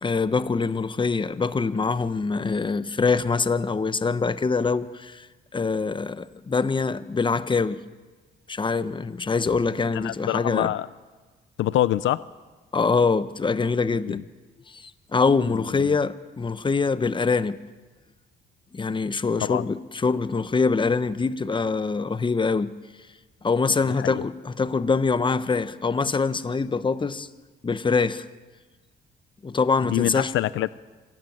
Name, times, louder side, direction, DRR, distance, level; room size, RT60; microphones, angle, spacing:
voice 1, 0.0-5.3 5.5-7.8 8.5-10.7 12.7-14.2 14.7-17.6 18.7-22.7 23.4-27.3 27.6-28.2 29.4-30.3, left 4 dB, 25° left, 1.0 m, -24 dB
voice 2, 10.0-10.9 11.6-12.2 14.1-14.2 15.8-15.9 19.4-19.6 24.0-24.2 29.8-30.7, left 13 dB, 75° left, 0.6 m, -25 dB
26.5 x 14.0 x 9.4 m
cardioid pair, 90°, 20 cm